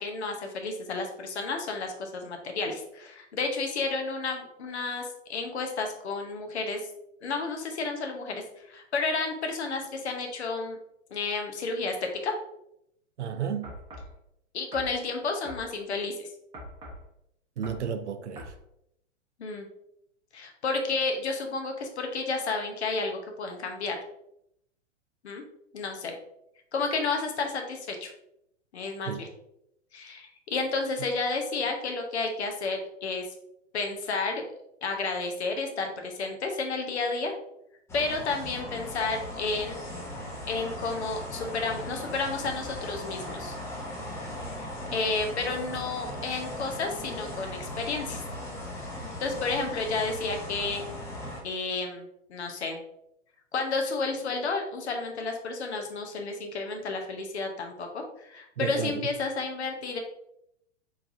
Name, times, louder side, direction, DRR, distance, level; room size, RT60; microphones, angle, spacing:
voice 1, 0.0-6.8 7.2-8.4 8.7-10.8 11.1-12.3 14.5-16.3 19.4-19.7 20.3-24.0 25.2-25.4 25.7-26.1 26.7-28.1 28.7-29.3 29.9-33.3 33.7-34.4 34.8-37.3 37.9-39.8 40.5-43.5 44.4-48.2 49.2-50.8 51.4-52.8 53.5-60.0, left 3 dB, 60° left, 0.9 m, -31 dB
voice 2, 13.2-13.7 17.6-18.5 29.1-29.2 58.6-59.0, right 7 dB, 65° right, 0.5 m, -32 dB
sound 1, 13.6-14.1 14.7-15.0 15.4-15.7 16.5-17.1 17.6-17.9 18.4-18.6, equal, 15° right, 0.9 m, -42 dB
sound 2, 37.9-51.4, left 1 dB, 5° left, 0.6 m, -38 dB
4.5 x 3.3 x 2.6 m
figure-of-eight pair, 105°, 37 cm